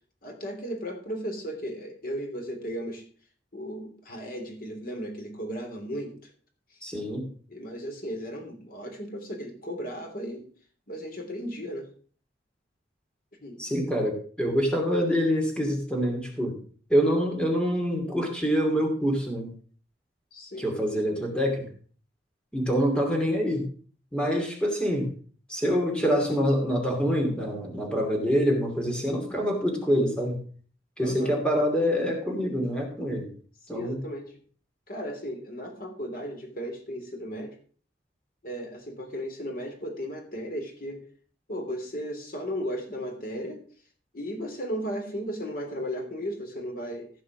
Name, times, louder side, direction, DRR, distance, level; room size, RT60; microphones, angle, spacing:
voice 1, 0.2-3.0 3.5-6.3 6.7-6.8 7.5-10.5 10.9-11.9 13.4-13.6 20.3-20.7 31.0-31.4 33.7-34.4 34.9-37.6 38.4-41.0 41.5-43.6 44.1-47.1, equal, 50° left, 3 dB, 3.2 m, -35 dB
voice 2, 6.8-7.3 13.6-16.6 16.9-19.5 20.6-21.7 22.5-23.7 24.1-25.1 25.5-30.4 31.0-33.3 33.7-34.0, equal, 5° left, 1 dB, 2.7 m, -26 dB
15.5 x 5.6 x 6.1 m, 0.43 s
head